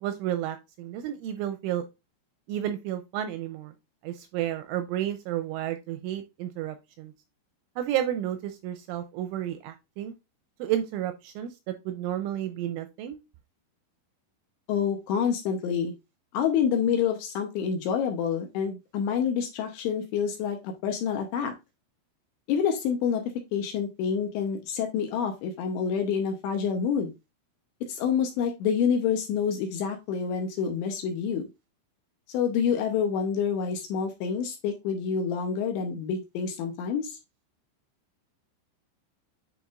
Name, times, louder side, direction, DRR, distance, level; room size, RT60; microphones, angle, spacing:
voice 1, 0.0-1.8 2.5-3.7 4.0-7.1 7.8-10.1 10.6-13.2, right 11 dB, 85° right, 9 dB, 2.8 m, -31 dB
voice 2, 14.7-15.9 16.3-21.5 22.5-23.2 23.5-27.1 27.9-31.4 32.3-37.2, left 7 dB, 75° left, 3 dB, 2.8 m, -27 dB
10.0 x 4.2 x 2.4 m, 0.24 s
omnidirectional pair, 5.9 m